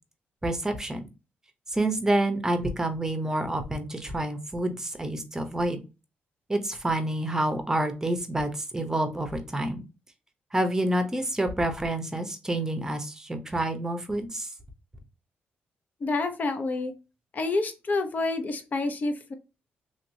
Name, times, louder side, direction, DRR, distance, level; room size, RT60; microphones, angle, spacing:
voice 1, 0.4-1.0 1.7-5.8 6.5-9.8 10.5-14.5, right 1 dB, 15° right, 6 dB, 0.8 m, -28 dB
voice 2, 16.0-16.9 17.3-19.3, left 3 dB, 45° left, 7 dB, 0.7 m, -28 dB
3.1 x 2.9 x 2.6 m, 0.29 s
cardioid pair, 95°, 4 cm